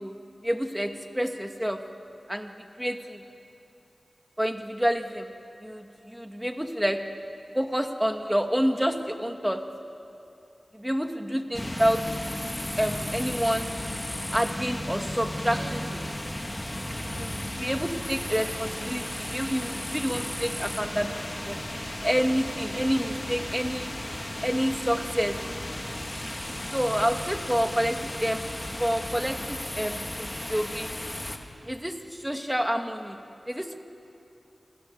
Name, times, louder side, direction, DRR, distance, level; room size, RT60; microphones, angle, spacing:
voice 1, 0.0-1.8 2.3-2.5 2.8-3.2 4.4-5.3 5.6-7.0 7.5-9.6 10.7-12.0 12.8-13.7 14.3-16.2 17.1-21.6 22.0-23.9 24.4-25.4 26.7-28.4 28.8-30.9 31.6-33.2 33.5-33.8, equal, 5° right, 5 dB, 2.1 m, -28 dB
sound 1, 11.5-31.4, left 1 dB, 20° left, 2.5 m, -34 dB
sound 2, 15.5-17.1, right 1 dB, 40° right, 5.3 m, -43 dB
28.5 x 27.0 x 7.1 m, 2.7 s
wide cardioid pair, 60°, 0 cm